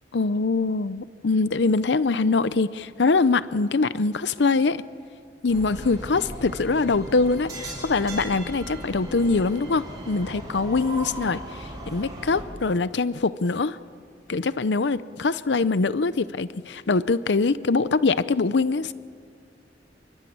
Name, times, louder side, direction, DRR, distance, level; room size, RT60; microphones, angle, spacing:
voice 1, 0.1-4.8 5.4-13.8 14.3-18.9, left 3 dB, 70° left, 15 dB, 0.6 m, -23 dB
sound 1, 5.5-12.4, right 1 dB, 20° right, 7.6 m, -37 dB
28.0 x 23.5 x 8.6 m, 2.2 s
head